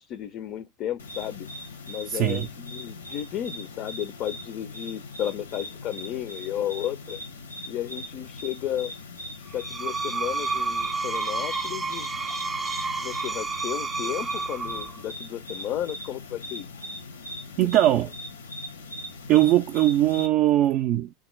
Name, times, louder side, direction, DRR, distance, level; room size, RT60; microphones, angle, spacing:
voice 1, 0.0-1.5 1.9-7.2 7.7-8.9 9.5-12.2 13.0-16.7 17.6-17.9, left 11 dB, 50° left, 0.4 m, -33 dB
sound 1, 1.0-20.3, left 1 dB, 85° left, 0.6 m, -40 dB
voice 2, 2.1-2.5 17.6-18.1 19.3-21.1, right 14 dB, 50° right, 0.3 m, -21 dB
Screech, 9.5-15.0, right 4 dB, 15° right, 0.6 m, -30 dB
3.5 x 2.3 x 3.0 m
hypercardioid pair, 90°, 0 cm